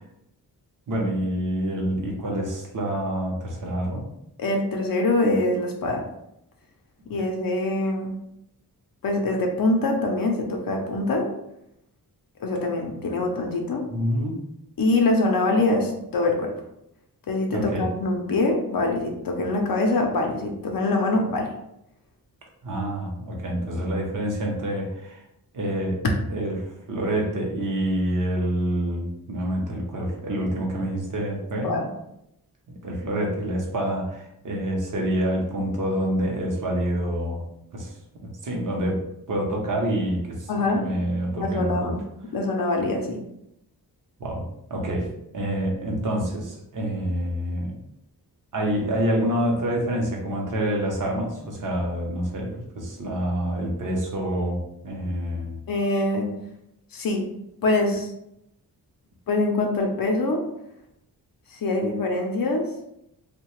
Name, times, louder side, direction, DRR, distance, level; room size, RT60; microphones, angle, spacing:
voice 1, 0.9-4.1 13.9-14.4 17.5-17.9 22.6-25.2 25.5-26.0 26.3-31.8 32.8-37.4 37.7-38.0 38.2-39.0 39.3-41.9 44.2-47.8 48.5-55.6, right 1 dB, 55° right, 0 dB, 0.7 m, -27 dB
voice 2, 4.4-6.1 7.1-8.2 9.0-11.3 12.4-13.9 14.8-16.5 17.3-21.5 31.6-31.8 40.5-40.8 41.4-42.0 42.3-43.2 55.7-56.3 56.9-57.2 57.6-58.1 59.3-60.4 61.5-62.7, left 2 dB, 60° left, 1 dB, 0.5 m, -24 dB
2.7 x 2.1 x 3.0 m, 0.81 s
wide cardioid pair, 170°, 38 cm